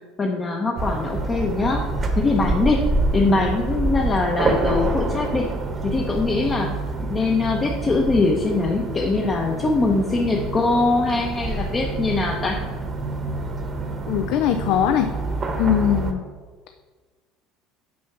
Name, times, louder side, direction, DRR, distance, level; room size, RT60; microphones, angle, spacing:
voice 1, 0.2-1.8 2.2-2.8 3.1-5.5 5.8-6.7 7.1-12.6, left 3 dB, 25° left, 0 dB, 0.8 m, -22 dB
sound 1, 0.8-16.1, right 2 dB, 25° right, 1.0 m, -27 dB
voice 2, 14.1-15.1 15.6-16.2, left 9 dB, 65° left, 8 dB, 0.4 m, -21 dB
6.3 x 5.6 x 5.8 m, 1.5 s
cardioid pair, 125°, 0 cm